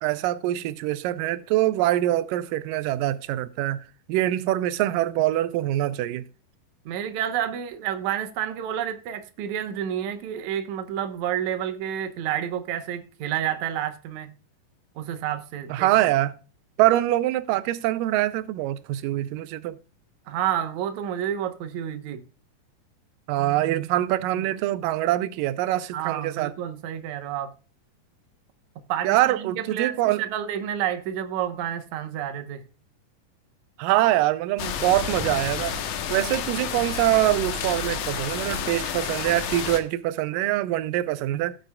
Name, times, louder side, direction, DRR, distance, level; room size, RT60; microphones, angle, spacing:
voice 1, 0.0-6.3 15.7-16.3 16.8-19.8 23.3-26.5 29.0-30.3 33.8-35.8 36.1-41.6, right 14 dB, 85° right, 2.3 m, -24 dB
voice 2, 6.9-14.3 15.0-16.1 20.3-22.2 24.3-24.4 25.9-27.5 28.9-32.6, right 10 dB, 65° right, 2.2 m, -30 dB
sound 1, 34.6-39.8, left 7 dB, 70° left, 2.5 m, -30 dB
16.5 x 7.7 x 2.3 m
omnidirectional pair, 3.9 m